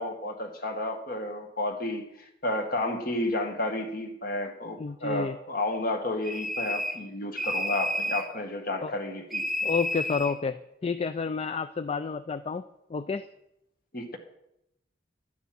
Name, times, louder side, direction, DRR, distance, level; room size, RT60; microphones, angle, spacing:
voice 1, 0.0-9.5 13.9-14.2, left 1 dB, 50° left, 5 dB, 1.6 m, -31 dB
voice 2, 4.8-5.4 8.8-9.0 9.6-12.6 12.9-13.3, left 5 dB, 35° left, 12 dB, 0.3 m, -30 dB
sound 1, 6.2-7.1 7.4-8.3 9.3-10.4, left 1 dB, ahead, 0.8 m, -30 dB
12.5 x 9.6 x 5.9 m, 0.83 s
head